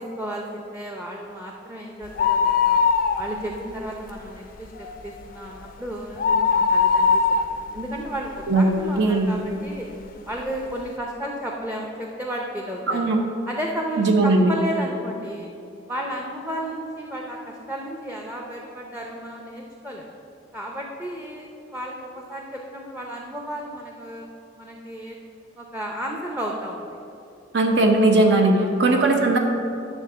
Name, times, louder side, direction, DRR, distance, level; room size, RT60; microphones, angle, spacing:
voice 1, 0.0-2.8 3.2-7.2 7.5-9.9 10.3-13.1 13.4-15.5 15.9-20.1 20.5-24.3 24.6-25.2 25.6-26.9 28.6-29.1, right 1 dB, 10° right, -1 dB, 0.6 m, -33 dB
sound 1, 2.0-3.7 4.0-4.1 4.6-9.0 9.5-9.6 10.4-10.5 10.7-10.8, left 5 dB, 50° left, 0.5 m, -21 dB
voice 2, 9.0-9.3 12.9-13.2 14.0-14.5 27.5-29.4, right 2 dB, 65° right, 2 dB, 0.8 m, -18 dB
10.5 x 3.7 x 6.6 m, 2.7 s
head